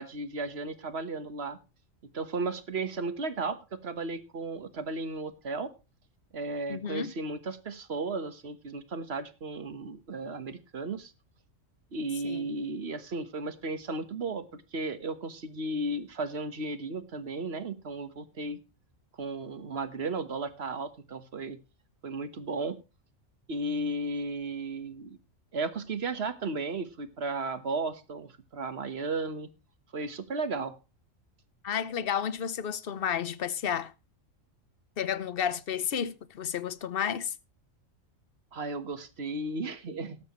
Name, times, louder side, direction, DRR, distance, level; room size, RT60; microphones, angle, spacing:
voice 1, 0.0-1.6 2.1-5.7 6.3-11.1 11.9-18.6 19.2-21.6 22.0-22.8 23.5-25.2 25.5-29.5 29.9-30.8 38.5-40.2, right 3 dB, 50° right, 1.6 m, -34 dB
voice 2, 6.7-7.1 12.2-12.5 31.6-33.9 35.0-37.3, left 8 dB, 50° left, 1.0 m, -31 dB
18.5 x 9.4 x 3.1 m
omnidirectional pair, 1.4 m